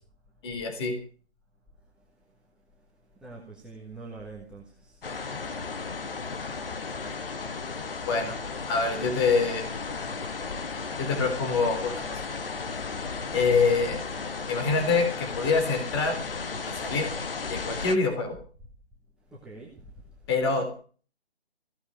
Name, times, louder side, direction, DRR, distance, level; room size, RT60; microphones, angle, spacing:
voice 1, 0.4-0.9 8.1-8.4 8.7-9.7 11.0-12.2 13.3-14.0 14.5-16.2 16.7-17.1 17.5-18.4 20.3-20.8, left 4 dB, 25° left, 5 dB, 3.7 m, -25 dB
voice 2, 3.2-5.2 19.3-19.9, right 3 dB, 5° right, -4 dB, 1.4 m, -44 dB
sound 1, 5.0-18.0, left 4 dB, 60° left, 1.7 m, -34 dB
16.0 x 8.0 x 9.2 m, 0.41 s
figure-of-eight pair, 150°, 32 cm